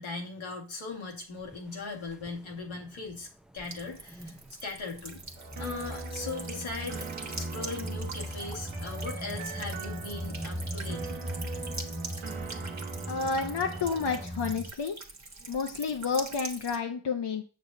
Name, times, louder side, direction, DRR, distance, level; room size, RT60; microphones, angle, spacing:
voice 1, 0.0-3.3 3.5-5.2 5.6-11.2, left 4 dB, 85° left, -1 dB, 1.8 m, -39 dB
sound 1, 1.4-1.6 2.1-3.2 3.6-4.5 5.0-14.7, equal, ahead, 0.6 m, -39 dB
Buzz / Water tap faucet / Trickle dribble, 3.6-16.8, right 3 dB, 35° right, 1.4 m, -44 dB
sound 2, 5.4-14.3, right 6 dB, 85° right, 1.2 m, -43 dB
voice 2, 13.1-15.0 15.5-17.4, left 5 dB, 60° left, 3 dB, 1.0 m, -30 dB
6.8 x 6.3 x 2.6 m, 0.36 s
cardioid pair, 45°, 46 cm